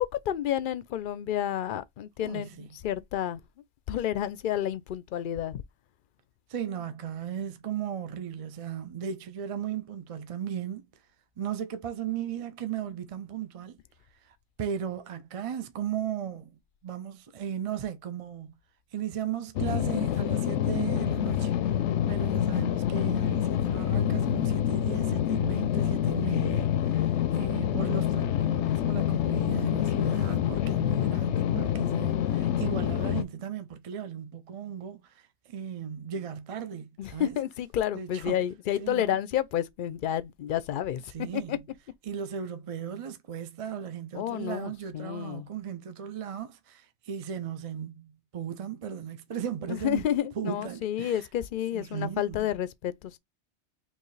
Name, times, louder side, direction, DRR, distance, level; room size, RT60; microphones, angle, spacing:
voice 1, 0.3-3.4 3.9-5.6 37.0-41.0 41.3-41.6 44.2-45.5 49.7-53.2, left 11 dB, 60° left, 0.6 m, -30 dB
voice 2, 2.2-2.8 6.5-10.8 11.4-13.8 14.2-16.5 16.8-18.6 18.9-21.5 22.1-37.4 37.9-38.4 38.8-39.2 41.1-41.6 42.0-50.1 50.4-51.3 51.7-52.5, right 9 dB, 45° right, 0.5 m, -36 dB
sound 1, 19.6-33.2, left 10 dB, 90° left, 0.9 m, -27 dB
4.5 x 3.0 x 3.2 m
omnidirectional pair, 1.2 m